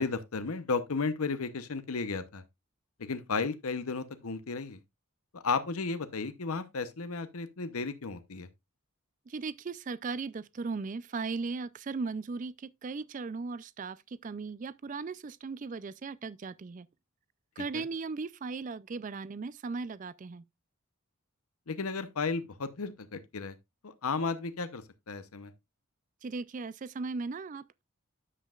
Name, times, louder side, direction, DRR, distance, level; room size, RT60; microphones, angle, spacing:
voice 1, 0.0-2.4 3.0-4.8 5.3-8.5 17.7-17.8 21.7-23.5 23.8-25.5, left 4 dB, 80° left, 0.8 m, -34 dB
voice 2, 9.3-16.9 17.6-20.4 26.2-27.8, right 4 dB, 35° right, 0.3 m, -37 dB
9.9 x 7.6 x 2.4 m
head